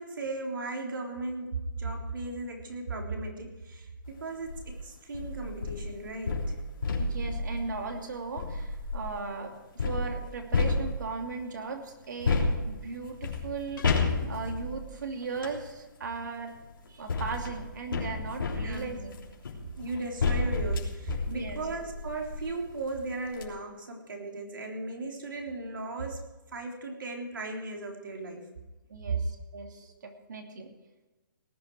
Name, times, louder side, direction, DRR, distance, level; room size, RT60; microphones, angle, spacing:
voice 1, 0.0-6.5 14.2-14.4 18.6-18.9 19.8-26.2 26.5-28.5 29.1-29.2, right 3 dB, 80° right, 1 dB, 3.7 m, -36 dB
sound 1, 4.3-4.7 5.1-9.2 9.8-11.3 12.2-15.6 16.6-22.5 22.9-23.0 23.3-23.5, left 3 dB, 85° left, 3.3 m, -31 dB
voice 2, 7.0-13.9 14.3-16.5 16.9-19.2 21.3-21.6 28.9-30.7, right 4 dB, 60° right, 3 dB, 2.7 m, -37 dB
18.5 x 11.0 x 4.8 m, 1.1 s
hypercardioid pair, 170°, 11 cm